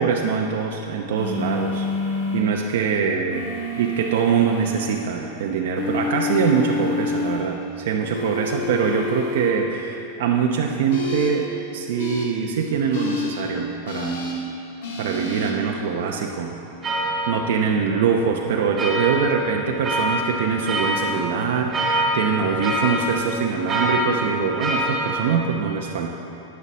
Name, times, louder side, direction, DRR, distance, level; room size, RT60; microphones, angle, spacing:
voice 1, 0.0-1.9 2.3-3.4 3.8-14.2 15.0-16.5 17.3-26.2, right 6 dB, 75° right, 1 dB, 0.8 m, -23 dB
sound 1, 1.2-2.4 3.3-4.8 5.8-7.4 8.1-9.5 10.9-11.3 12.0-12.2 12.9-13.3 13.9-14.3 14.8-15.5, left 2 dB, 70° left, 2.0 m, -27 dB
sound 2, 16.8-25.5, right 1 dB, 25° right, 2.3 m, -26 dB
9.8 x 6.9 x 6.1 m, 2.9 s
hypercardioid pair, 120°, 0 cm